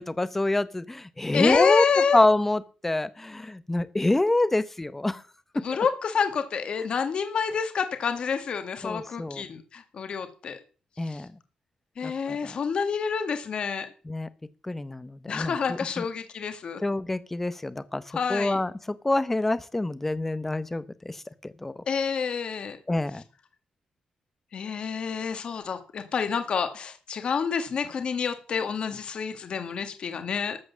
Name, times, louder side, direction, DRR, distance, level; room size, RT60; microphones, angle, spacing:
voice 1, 0.0-1.9 2.1-5.2 5.5-5.6 8.8-9.4 11.0-11.3 12.0-12.6 14.1-14.3 14.6-16.0 16.8-18.0 18.3-21.2 21.4-21.7 22.9-23.2, left 2 dB, 10° left, 15 dB, 0.8 m, -26 dB
voice 2, 1.3-2.2 5.6-10.6 11.0-11.2 12.0-13.9 15.3-16.8 18.1-18.6 21.9-22.8 24.5-30.6, left 6 dB, 50° left, 8 dB, 1.6 m, -28 dB
13.0 x 7.8 x 7.2 m, 0.38 s
wide cardioid pair, 175°, 2 cm